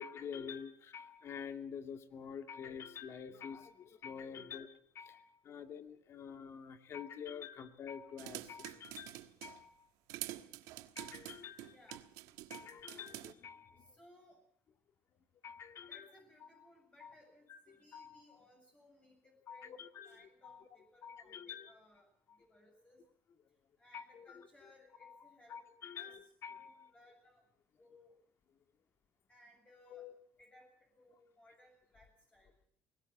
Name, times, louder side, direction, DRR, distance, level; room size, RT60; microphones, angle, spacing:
voice 1, 0.0-9.9 11.0-12.0 12.5-14.0 15.4-16.1 16.4-16.7 17.0-17.1 17.5-18.2 19.5-20.6 21.0-21.7 22.3-22.4 23.9-24.7 25.0-26.9 29.9-30.1, left 7 dB, 50° left, 8 dB, 2.3 m, -48 dB
sound 1, 8.2-9.6 10.1-13.3, right 16 dB, 85° right, 1.3 m, -47 dB
voice 2, 13.8-14.4 15.9-19.8 20.0-22.1 22.4-23.0 23.8-25.6 25.9-27.4 27.8-28.1 29.3-30.1 30.4-30.7 31.0-32.5, left 1 dB, 20° left, 0 dB, 7.5 m, -64 dB
21.5 x 19.0 x 7.3 m, 0.63 s
cardioid pair, 105°, 6 cm